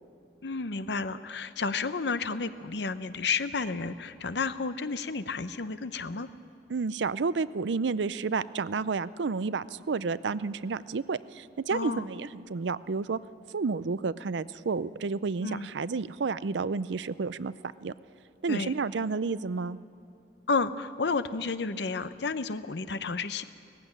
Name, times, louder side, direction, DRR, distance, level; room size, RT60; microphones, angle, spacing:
voice 1, 0.4-6.3 11.7-12.1 15.4-15.7 18.5-18.7 20.5-23.4, left 4 dB, 70° left, 12 dB, 0.8 m, -31 dB
voice 2, 6.7-13.2 13.5-17.5 17.8-17.9 18.4-19.8, right 4 dB, 90° right, 16 dB, 0.5 m, -30 dB
18.0 x 15.5 x 10.0 m, 2.5 s
head